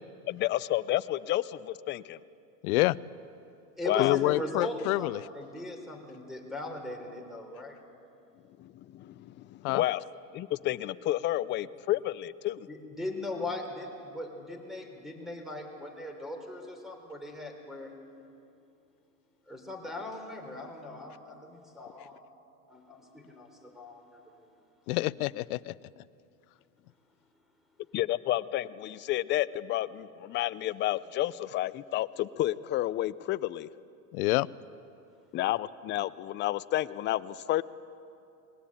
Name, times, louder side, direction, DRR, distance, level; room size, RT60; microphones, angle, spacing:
voice 1, 0.3-2.2 3.9-4.2 8.6-10.0 10.3-12.7 27.9-33.7 35.3-37.6, left 14 dB, 25° left, 15 dB, 0.4 m, -30 dB
voice 2, 2.6-3.0 4.0-5.2 9.6-9.8 24.9-25.7 34.1-34.5, left 19 dB, 70° left, 20 dB, 0.6 m, -27 dB
voice 3, 3.8-5.1 5.3-7.8 12.7-17.9 19.5-22.2 22.7-24.3, left 1 dB, ahead, 4 dB, 3.7 m, -39 dB
20.5 x 19.0 x 8.8 m, 2.6 s
supercardioid pair, 120°, 45 cm